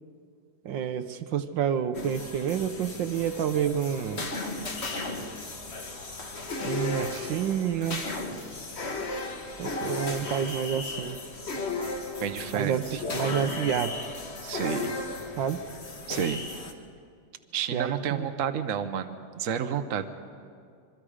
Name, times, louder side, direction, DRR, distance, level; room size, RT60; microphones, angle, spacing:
voice 1, 0.6-4.3 6.6-8.0 9.6-11.2 12.5-13.9 15.4-15.6 17.7-18.3, right 8 dB, 70° right, 10 dB, 1.4 m, -29 dB
sound 1, 1.9-16.7, left 3 dB, 35° left, 1.5 m, -35 dB
voice 2, 12.2-13.0 14.4-15.0 16.1-16.4 17.5-20.1, right 8 dB, 50° right, 8 dB, 1.0 m, -30 dB
26.5 x 22.5 x 5.0 m, 2.3 s
omnidirectional pair, 2.2 m